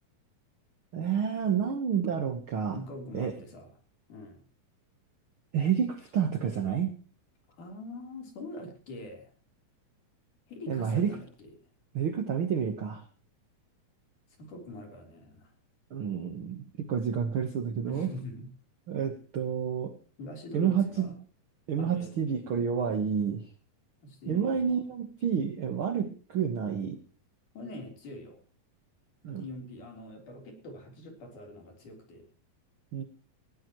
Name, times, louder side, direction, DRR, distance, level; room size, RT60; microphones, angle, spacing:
voice 1, 0.9-2.8 3.1-3.3 5.5-6.9 10.7-11.2 11.9-13.0 15.9-18.1 18.9-19.9 20.5-21.1 21.7-23.5 24.3-27.0 29.2-29.5 32.9-33.0, right 7 dB, 75° right, 8 dB, 1.2 m, -29 dB
voice 2, 2.7-3.7 4.1-4.4 7.6-9.3 10.5-11.3 14.4-15.5 17.9-18.5 20.2-21.2 21.8-22.5 24.0-24.9 27.5-28.4 29.3-32.3, left 1 dB, 55° left, 3 dB, 5.1 m, -44 dB
19.5 x 17.0 x 3.1 m, 0.40 s
omnidirectional pair, 4.3 m